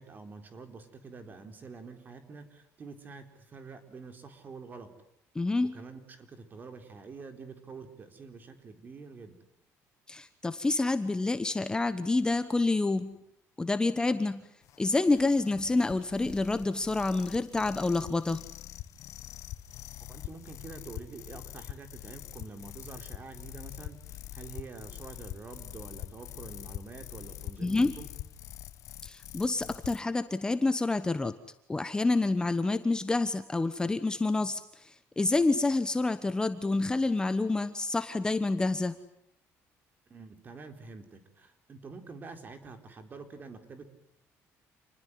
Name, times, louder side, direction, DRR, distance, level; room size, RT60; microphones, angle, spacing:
voice 1, 0.0-4.9 5.7-9.4 20.1-28.2 40.1-43.9, right 4 dB, 35° right, 7 dB, 4.2 m, -47 dB
voice 2, 5.3-5.8 10.1-13.2 13.6-14.5 14.8-18.5 27.6-27.9 29.0-31.3 31.7-38.9, left 3 dB, 15° left, 11 dB, 1.2 m, -28 dB
sound 1, 14.6-30.0, left 13 dB, 65° left, 1.5 m, -45 dB
28.5 x 20.5 x 9.6 m, 0.73 s
cardioid pair, 125°, 6 cm